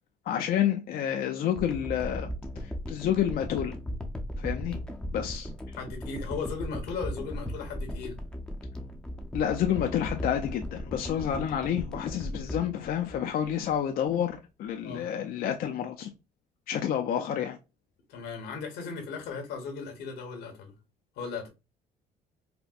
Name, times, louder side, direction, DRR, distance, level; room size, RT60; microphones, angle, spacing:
voice 1, 0.2-2.3 2.6-3.8 4.4-4.8 5.1-5.5 9.3-16.1 16.7-17.6, left 9 dB, 60° left, 0.5 m, -29 dB
sound 1, 1.6-13.8 14.3-14.4, equal, 5° left, 0.6 m, -37 dB
voice 2, 5.7-8.2 14.8-15.0 18.1-20.7 21.2-21.5, left 5 dB, 90° left, 1.2 m, -37 dB
4.2 x 2.1 x 2.4 m
cardioid pair, 110°, 17 cm